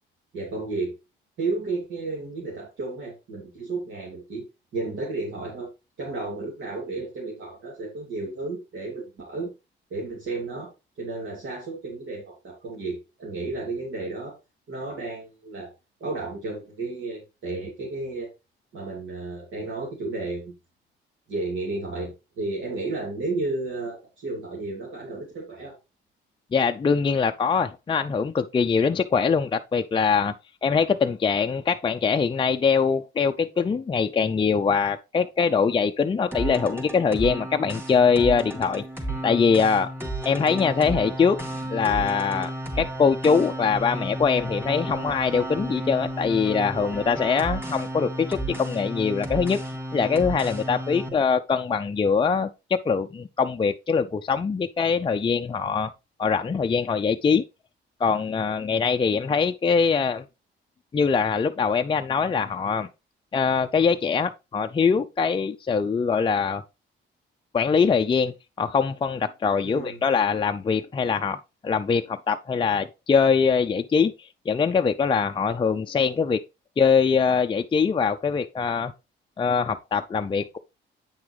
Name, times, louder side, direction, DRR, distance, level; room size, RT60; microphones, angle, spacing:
voice 1, 0.3-0.9 1.4-4.4 4.7-5.7 6.0-9.5 9.9-10.7 11.0-14.4 14.7-15.7 16.0-18.3 18.7-20.5 21.3-25.8 51.0-51.1 69.6-70.0, right 3 dB, 70° right, 3.0 m, -32 dB
voice 2, 26.5-30.3 30.6-38.8 39.2-39.9 40.2-41.4 41.7-49.6 49.9-55.9 56.2-57.4 58.0-60.2 60.9-62.9 63.3-66.6 67.5-71.4 71.6-76.4 76.8-78.9 79.4-80.6, left 5 dB, 25° left, 0.5 m, -23 dB
sound 1, 36.3-51.1, right 1 dB, 10° right, 2.9 m, -33 dB
8.7 x 6.0 x 3.3 m
cardioid pair, 90°, 20 cm